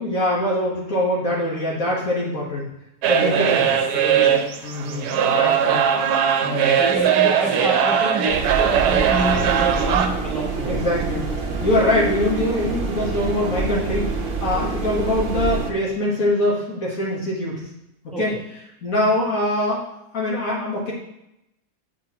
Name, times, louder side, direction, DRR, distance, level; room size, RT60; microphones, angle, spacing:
voice 1, 0.0-2.7 3.0-3.6 3.9-5.9 6.4-6.7 10.7-11.2 11.6-17.7 18.0-18.3 18.8-19.9 20.1-20.9, left 1 dB, 60° left, -5 dB, 1.6 m, -23 dB
sound 1, 3.0-10.1, right 8 dB, 75° right, 1.1 m, -20 dB
voice 2, 3.1-3.8 4.8-5.1 6.7-10.8 14.7-15.0 18.1-18.2, right 2 dB, ahead, -7 dB, 2.0 m, -28 dB
sound 2, 8.3-15.7, right 4 dB, 45° right, 0.8 m, -26 dB
7.9 x 5.4 x 2.8 m, 0.85 s
omnidirectional pair, 1.8 m